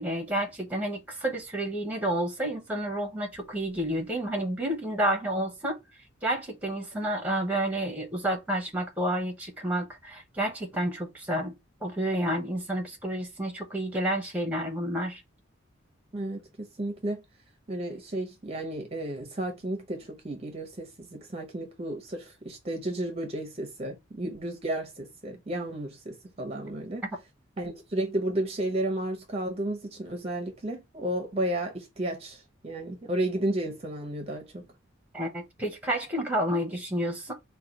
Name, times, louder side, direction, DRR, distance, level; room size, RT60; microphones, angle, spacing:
voice 1, 0.0-5.8 6.2-11.5 11.8-15.2 35.1-37.3, right 1 dB, 10° right, 0.9 m, -30 dB
voice 2, 16.1-17.2 17.7-27.0 27.6-34.6, right 1 dB, 30° right, 0.7 m, -33 dB
3.8 x 2.3 x 4.5 m
head